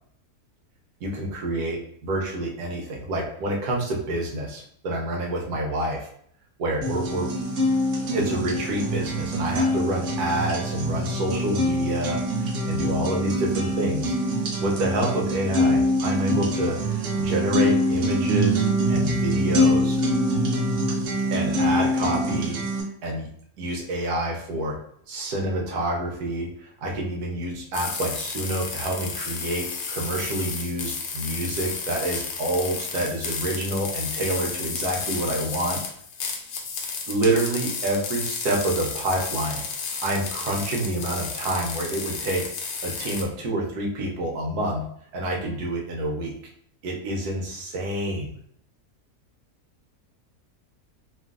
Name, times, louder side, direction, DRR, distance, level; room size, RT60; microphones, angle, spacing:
voice 1, 1.0-6.1 6.6-7.3 8.1-14.2 14.6-20.0 21.3-22.6 23.0-24.8 25.1-35.8 37.1-39.6 40.0-42.5 42.8-46.3 46.8-48.4, right 1 dB, 80° right, -1 dB, 1.2 m, -28 dB
sound 1, 6.8-22.8, equal, 60° right, 0.9 m, -24 dB
sound 2, 27.7-43.2, left 5 dB, 85° left, 1.1 m, -32 dB
3.0 x 2.5 x 2.4 m, 0.65 s
omnidirectional pair, 1.7 m